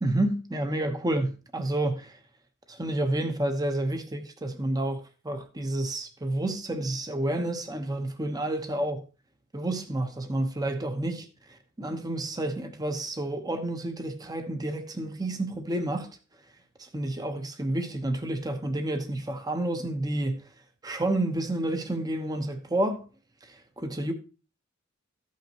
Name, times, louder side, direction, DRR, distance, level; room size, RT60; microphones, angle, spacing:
voice 1, 0.0-2.2 2.7-9.0 9.5-16.1 16.8-20.5 20.8-23.0 23.5-24.1, right 1 dB, 20° right, 1.0 m, -30 dB
14.5 x 5.7 x 2.9 m
head